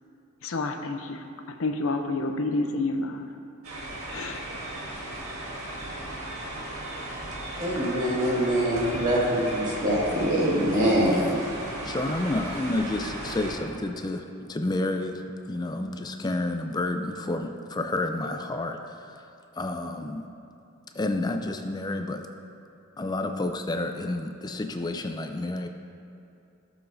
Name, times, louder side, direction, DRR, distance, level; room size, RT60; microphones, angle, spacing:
voice 1, 0.4-1.2 1.6-3.2 4.1-4.4, left 2 dB, 70° left, 6 dB, 0.6 m, -29 dB
sound 1, 3.6-13.5, right 1 dB, 85° right, 1.6 m, -36 dB
voice 2, 7.6-11.3, right 1 dB, 40° right, -6 dB, 2.0 m, -24 dB
voice 3, 10.8-19.1 19.6-20.3 20.9-22.2 23.0-25.7, left 2 dB, 20° left, 6 dB, 0.4 m, -30 dB
14.0 x 7.0 x 2.6 m, 2.7 s
head